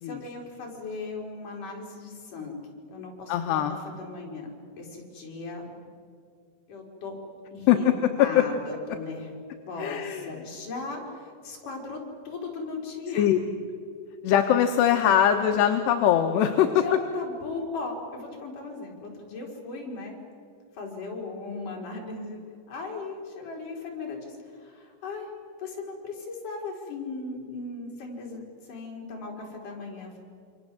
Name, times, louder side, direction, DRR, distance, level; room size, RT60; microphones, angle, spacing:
voice 1, 0.0-2.6 2.9-4.5 4.8-5.7 6.7-7.1 7.5-7.9 8.2-9.4 9.7-13.2 16.8-20.2 20.7-22.4 22.7-25.3 25.6-30.2, left 3 dB, 45° left, 0 dB, 5.8 m, -37 dB
voice 2, 3.3-3.8 7.7-8.1 9.8-10.3 13.1-13.4 14.2-17.0, left 10 dB, 70° left, 5 dB, 3.0 m, -22 dB
28.0 x 25.5 x 7.8 m, 2.3 s
omnidirectional pair, 5.5 m